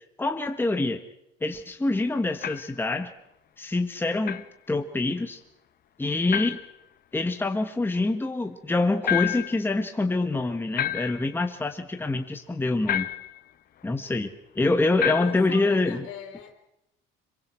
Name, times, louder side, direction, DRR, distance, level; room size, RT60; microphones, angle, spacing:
voice 1, 0.2-1.0 1.4-3.1 3.6-5.4 6.0-6.6 7.1-13.1 13.8-16.1, left 2 dB, 10° left, 5 dB, 1.4 m, -26 dB
sound 1, 2.4-2.8 4.2-4.5 6.3-6.7 9.0-9.6 10.8-11.4 12.9-13.4 15.0-15.5, left 11 dB, 45° left, 0.9 m, -29 dB
voice 2, 15.1-16.5, left 9 dB, 90° left, 2 dB, 4.4 m, -40 dB
26.5 x 23.0 x 4.6 m, 0.81 s
cardioid pair, 135°, 21 cm